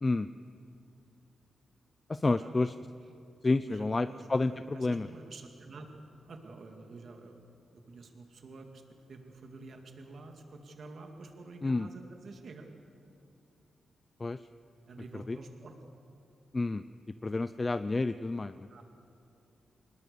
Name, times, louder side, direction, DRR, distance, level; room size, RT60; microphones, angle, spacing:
voice 1, 2.1-2.7 3.4-5.1 11.6-11.9 14.2-14.4 15.3-15.4 16.5-16.8 17.2-18.7, left 3 dB, 25° left, 12 dB, 0.5 m, -29 dB
voice 2, 3.7-5.9 6.3-7.5 7.7-8.8 9.1-12.7 14.9-15.7 18.7-18.8, right 3 dB, 55° right, 4 dB, 2.3 m, -49 dB
25.0 x 20.5 x 6.9 m, 2.6 s
wide cardioid pair, 130°, 0 cm